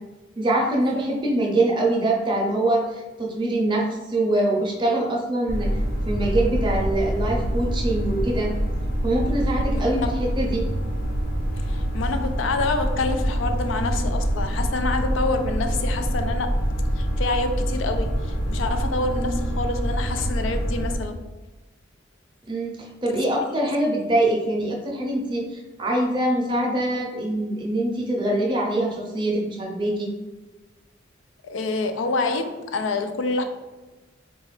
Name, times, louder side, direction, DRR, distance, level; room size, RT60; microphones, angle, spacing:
voice 1, 0.4-5.7 6.1-8.5 9.0-10.7 22.5-30.1, right 1 dB, 25° right, -2 dB, 0.6 m, -24 dB
sound 1, 5.5-21.0, equal, 45° left, 1.1 m, -25 dB
voice 2, 11.6-16.5 17.0-21.3 23.1-23.2 23.5-23.7 31.4-33.4, left 3 dB, 85° left, 7 dB, 0.4 m, -27 dB
3.8 x 2.4 x 3.1 m, 1.2 s
head